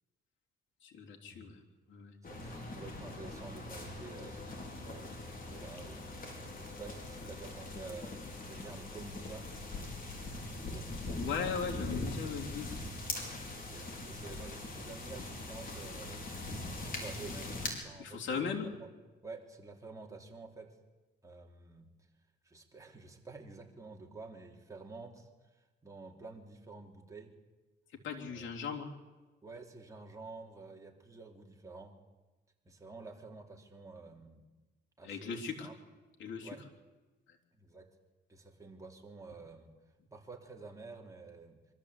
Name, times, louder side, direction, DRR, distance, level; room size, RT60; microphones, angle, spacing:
voice 1, 0.8-1.6 1.9-2.1 11.2-12.7 18.0-18.7 28.0-28.9 35.0-35.7 36.2-36.5, left 6 dB, 70° left, 0 dB, 3.3 m, -38 dB
sound 1, 2.2-17.7, left 2 dB, 45° left, 4.9 m, -42 dB
voice 2, 2.3-5.2 5.5-6.1 6.5-9.5 10.5-11.2 13.7-16.2 16.7-18.9 19.2-20.8 21.2-21.9 22.4-25.3 25.8-27.3 28.3-28.5 29.4-31.9 32.6-34.5 35.0-35.8 36.4-36.6 37.6-37.9 38.3-39.7 40.1-41.6, right 3 dB, 15° right, 1 dB, 3.4 m, -50 dB
24.0 x 13.5 x 8.5 m, 1.2 s
cardioid pair, 90°, 20 cm